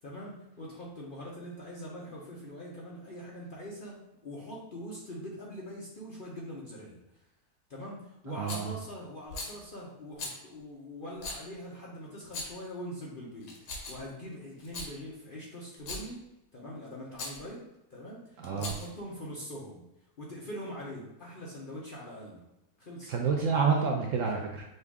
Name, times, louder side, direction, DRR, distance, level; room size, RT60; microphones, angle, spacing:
voice 1, 0.0-7.0 7.7-16.2 16.5-17.6 17.9-19.8 20.2-22.5 22.8-23.1, equal, 45° left, -4 dB, 0.7 m, -43 dB
voice 2, 8.4-8.7 18.4-18.7 23.1-24.6, right 5 dB, 65° right, 1 dB, 0.8 m, -28 dB
Rattle, 8.5-8.7 9.3-9.6 10.2-10.4 11.2-11.4 12.2-12.7 13.4-14.1 14.6-14.9 15.7-16.1 17.1-17.4 18.4-19.0, left 2 dB, 85° left, 1.5 m, -39 dB
5.4 x 2.5 x 3.5 m, 0.87 s
omnidirectional pair, 1.7 m